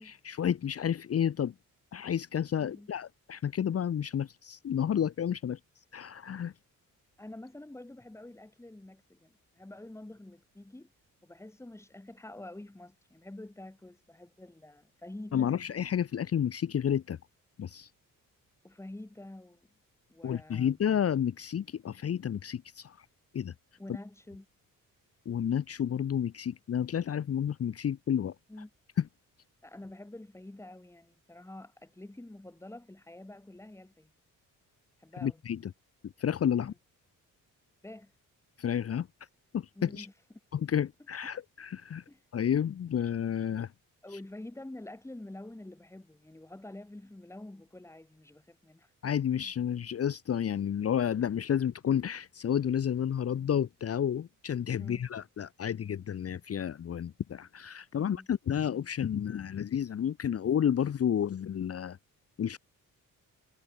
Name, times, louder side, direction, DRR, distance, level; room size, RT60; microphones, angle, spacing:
voice 1, 0.0-1.5 1.9-5.6 5.9-6.5 15.3-17.2 17.6-17.9 20.2-23.0 23.3-23.5 25.3-28.3 35.2-35.6 36.2-36.7 38.6-39.1 39.5-40.1 40.5-42.0 42.3-43.7 49.0-62.0 62.4-62.6, left 9 dB, 45° left, 1.0 m, -31 dB
voice 2, 2.6-2.9 7.2-10.9 11.2-15.6 18.6-19.7 20.1-20.8 23.8-24.5 28.5-28.7 29.6-34.1 35.0-35.4 36.6-36.7 37.8-38.1 39.7-40.1 42.1-42.2 44.0-48.9 54.8-55.0 58.0-58.3, left 1 dB, 10° left, 2.7 m, -47 dB
cardioid pair, 120°, 33 cm